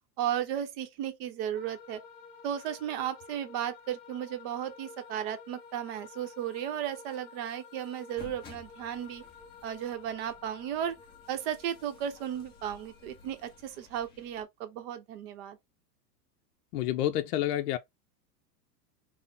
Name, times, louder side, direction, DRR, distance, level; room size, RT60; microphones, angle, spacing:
voice 1, 0.2-2.0 2.4-9.2 9.6-10.9 11.3-15.6, right 10 dB, 40° right, 0.7 m, -35 dB
sound 1, 1.5-13.6, left 5 dB, 45° left, 1.1 m, -52 dB
sound 2, 8.2-14.4, left 5 dB, 20° left, 0.8 m, -55 dB
voice 2, 16.7-17.8, left 13 dB, 70° left, 0.6 m, -29 dB
3.6 x 2.1 x 3.9 m
supercardioid pair, 155°, 49 cm